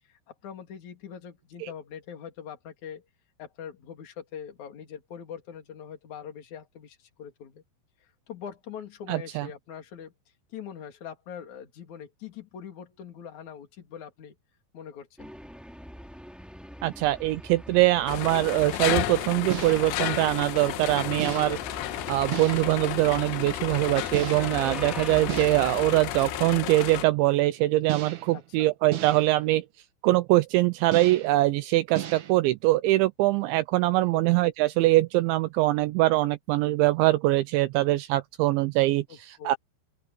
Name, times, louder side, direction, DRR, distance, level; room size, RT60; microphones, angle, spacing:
voice 1, 0.1-3.0 3.4-7.6 8.0-10.1 10.5-14.3 14.7-15.3 28.3-28.7 33.9-34.4 39.1-39.6, left 8 dB, 40° left, 3.4 m, -43 dB
voice 2, 9.1-9.5 16.8-21.6 22.1-29.6 30.0-39.6, right 18 dB, 85° right, 2.6 m, -23 dB
sound 1, 15.2-25.7, equal, ahead, 1.5 m, -43 dB
sound 2, 18.1-27.0, left 14 dB, 75° left, 2.9 m, -32 dB
sound 3, 19.5-20.0 21.2-21.7 22.3-22.8 24.1-24.7 25.3-25.9 27.9-28.4 28.9-29.4 30.9-31.4 31.9-32.3, right 12 dB, 65° right, 2.0 m, -35 dB
open air
omnidirectional pair, 6.0 m